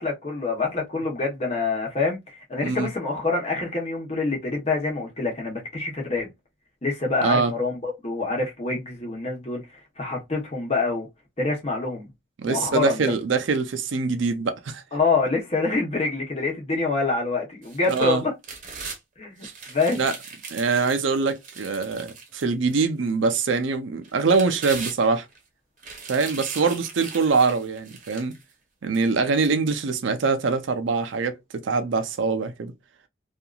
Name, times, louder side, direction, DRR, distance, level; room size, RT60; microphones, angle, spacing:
voice 1, 0.0-6.3 6.8-9.6 10.0-11.1 11.4-12.1 12.4-13.1 14.9-18.3 19.2-20.0, left 3 dB, 35° left, 1.1 m, -26 dB
voice 2, 7.2-7.5 12.4-14.8 17.9-18.2 19.4-19.5 19.9-20.1 20.5-25.3 26.1-28.3 28.8-32.7, right 4 dB, 75° right, 0.5 m, -23 dB
sound 1, 17.6-19.0 19.4-22.8 23.3-23.4 24.0-25.4 25.8-28.4 28.9-29.0, right 5 dB, 40° right, 0.9 m, -39 dB
2.8 x 2.4 x 2.3 m
head